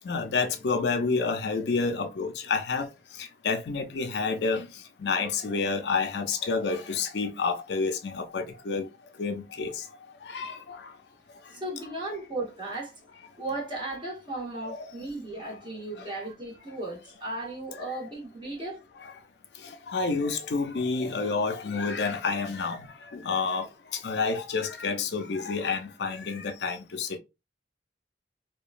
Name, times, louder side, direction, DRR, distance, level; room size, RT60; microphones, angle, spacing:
voice 1, 0.0-11.0 11.3-11.6 14.6-15.1 15.4-15.5 16.0-16.1 19.0-19.1 19.5-27.2, left 4 dB, 75° left, 0.5 m, -30 dB
voice 2, 11.5-12.9 13.4-18.8, right 2 dB, 30° right, 1.1 m, -36 dB
2.9 x 2.2 x 2.4 m
head